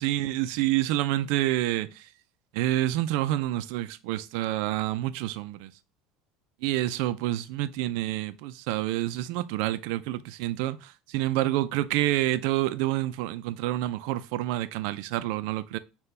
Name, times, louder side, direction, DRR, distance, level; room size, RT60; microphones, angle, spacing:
voice 1, 0.0-2.0 2.5-5.7 6.6-15.8, right 15 dB, 75° right, 0.4 m, -28 dB
5.7 x 2.3 x 3.3 m
cardioid pair, 135°, 0 cm